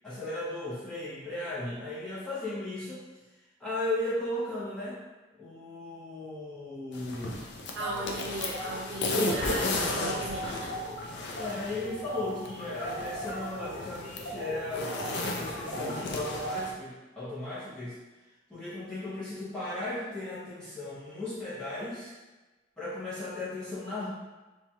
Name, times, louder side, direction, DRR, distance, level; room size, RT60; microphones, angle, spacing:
voice 1, 0.0-3.0 3.6-5.0 5.4-7.4 9.4-9.8 11.3-18.0 18.5-22.1 22.8-24.1, left 2 dB, 5° left, -11 dB, 0.8 m, -36 dB
sound 1, 6.9-16.7, left 2 dB, 65° left, 0.4 m, -35 dB
voice 2, 7.7-10.7, right 1 dB, 75° right, -3 dB, 0.7 m, -37 dB
sound 2, 7.8-11.0 11.3-11.6 11.8-16.7, right 1 dB, 85° left, 0.9 m, -38 dB
2.9 x 2.3 x 2.7 m, 1.2 s
head